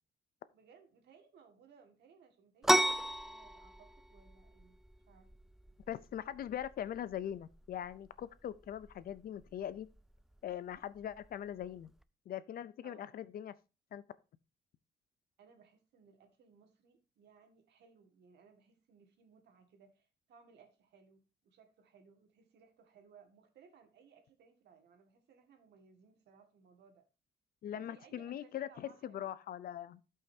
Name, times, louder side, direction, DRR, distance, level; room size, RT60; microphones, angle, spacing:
voice 1, 0.5-4.8 5.1-5.3 12.8-13.3 15.4-27.0 27.7-29.3, right 6 dB, 75° right, 2.0 m, -63 dB
sound 1, 2.6-12.0, right 1 dB, ahead, 0.3 m, -37 dB
voice 2, 5.9-9.9 10.4-11.9 12.3-13.5 13.9-14.0 27.6-30.0, left 10 dB, 55° left, 0.6 m, -41 dB
16.0 x 5.6 x 2.8 m
cardioid pair, 135°, 18 cm